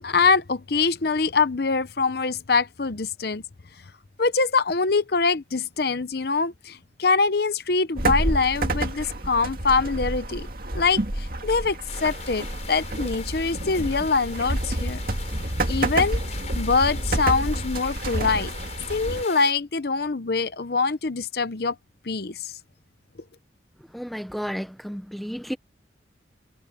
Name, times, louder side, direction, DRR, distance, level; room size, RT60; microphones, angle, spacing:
voice 1, 0.0-3.4 4.2-10.5 10.7-15.0 15.7-16.2 16.5-18.5 18.9-21.8 22.0-22.6, left 4 dB, 55° left, 0.8 m, -24 dB
sound 1, 8.0-19.2, right 1 dB, 50° right, 2.2 m, -29 dB
sound 2, 11.9-19.5, left 6 dB, 35° left, 5.7 m, -41 dB
voice 2, 23.9-25.6, equal, ahead, 1.0 m, -32 dB
head